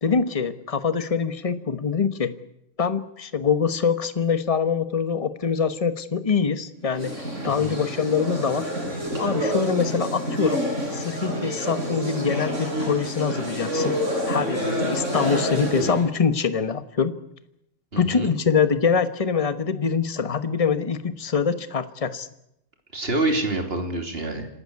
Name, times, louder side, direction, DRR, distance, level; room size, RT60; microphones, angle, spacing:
voice 1, 0.0-2.3 2.8-7.1 7.4-8.7 9.2-10.6 10.9-13.9 14.3-17.1 18.0-22.3, left 6 dB, 30° left, 11 dB, 1.2 m, -24 dB
sound 1, 6.9-16.1, equal, 70° right, 7.1 m, -28 dB
voice 2, 7.4-7.8 17.9-18.3 22.9-24.5, right 2 dB, 50° right, 4 dB, 3.4 m, -27 dB
27.0 x 13.0 x 9.6 m, 0.82 s
omnidirectional pair, 1.3 m